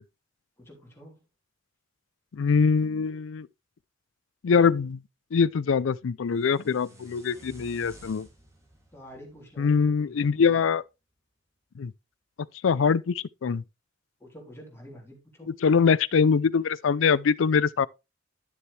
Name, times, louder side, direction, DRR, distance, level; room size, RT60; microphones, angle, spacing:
voice 1, 0.6-1.2 8.9-10.5 14.2-15.6, equal, 15° left, 3.5 m, -47 dB
voice 2, 2.3-3.5 4.4-5.0 5.3-8.3 9.6-10.8 11.8-11.9 12.6-13.6 15.6-17.9, left 5 dB, 90° left, 0.4 m, -23 dB
sound 1, 6.3-10.4, right 1 dB, 15° right, 2.5 m, -53 dB
11.0 x 7.0 x 3.2 m
head